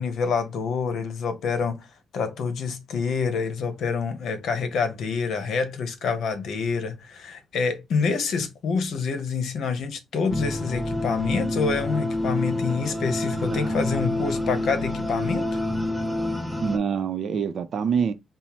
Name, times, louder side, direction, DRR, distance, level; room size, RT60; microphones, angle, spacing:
voice 1, 0.0-1.9 2.1-15.6, left 5 dB, 75° left, 0.8 m, -27 dB
sound 1, 10.3-16.8, left 1 dB, ahead, 0.7 m, -27 dB
voice 2, 13.5-13.9 16.6-18.1, right 6 dB, 65° right, 0.5 m, -26 dB
5.4 x 2.0 x 3.0 m
cardioid pair, 95°, 0 cm